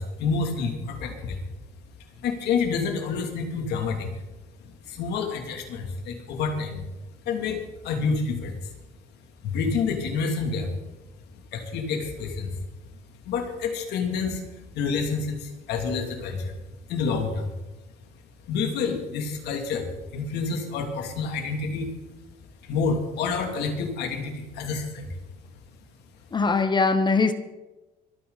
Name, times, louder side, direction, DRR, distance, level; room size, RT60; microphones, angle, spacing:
voice 1, 0.0-1.4 2.2-4.1 4.8-6.9 7.2-8.7 9.4-10.7 11.5-12.6 13.3-14.4 14.7-16.5 16.9-17.5 18.5-21.9 22.6-25.1, left 5 dB, 80° left, 2.8 m, -28 dB
voice 2, 26.3-27.3, left 4 dB, 25° left, 1.0 m, -21 dB
24.5 x 9.6 x 4.1 m
cardioid pair, 110°, 17 cm